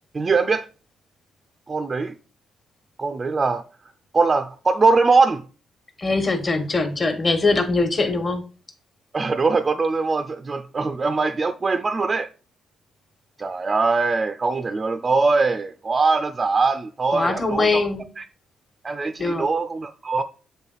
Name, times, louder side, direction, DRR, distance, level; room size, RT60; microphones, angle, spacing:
voice 1, 0.1-0.7 1.7-2.1 3.0-3.6 4.1-5.4 9.1-12.3 13.4-17.8 18.2-18.3 18.8-20.2, right 4 dB, 30° right, 0.5 m, -21 dB
voice 2, 6.0-8.4 17.1-18.1 19.2-19.5, left 3 dB, 30° left, 1.4 m, -22 dB
7.3 x 3.7 x 4.0 m
cardioid pair, 90°, 0 cm